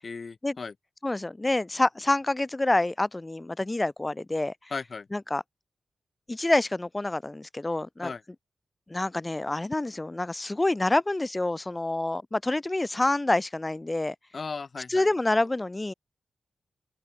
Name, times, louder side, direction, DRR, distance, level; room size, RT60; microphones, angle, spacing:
voice 1, 0.0-0.7 4.7-5.1 8.0-8.2 14.3-15.1, left 4 dB, 40° left, 7.8 m, -36 dB
voice 2, 1.0-4.5 5.1-5.4 6.3-8.1 8.9-14.1 14.9-15.9, left 2 dB, 15° left, 1.3 m, -27 dB
open air
wide cardioid pair, 130°, 0 cm